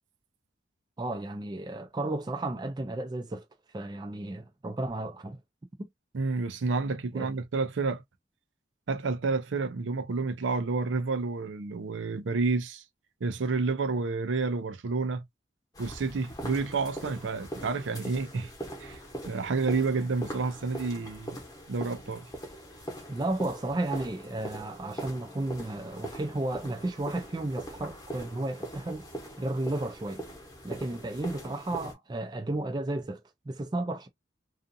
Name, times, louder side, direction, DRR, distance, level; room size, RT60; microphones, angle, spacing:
voice 1, 1.0-3.5 3.7-5.4 7.1-7.3 23.1-29.1 29.4-30.2 30.6-34.1, right 2 dB, 20° right, 0.3 m, -33 dB
voice 2, 6.1-8.0 8.9-12.8 13.2-15.2 15.8-18.5 18.8-19.0 19.3-21.4 21.7-22.3, right 4 dB, 85° right, 0.5 m, -30 dB
sound 1, 15.7-31.9, right 1 dB, 20° left, 0.9 m, -42 dB
2.5 x 2.4 x 2.6 m
head